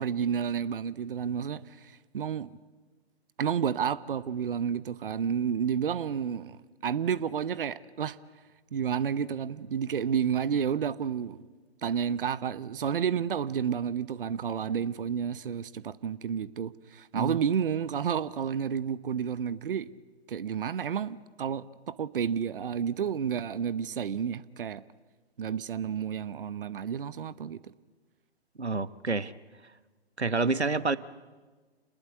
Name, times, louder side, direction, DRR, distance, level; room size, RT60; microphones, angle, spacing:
voice 1, 0.0-2.5 3.4-8.2 8.7-11.4 11.8-19.9 20.3-24.8 25.4-27.7, right 7 dB, 55° right, 17 dB, 0.9 m, -31 dB
voice 2, 28.6-29.3 30.2-31.0, right 3 dB, 85° right, 17 dB, 1.0 m, -28 dB
28.5 x 20.0 x 9.4 m, 1.3 s
figure-of-eight pair, 120°, 32 cm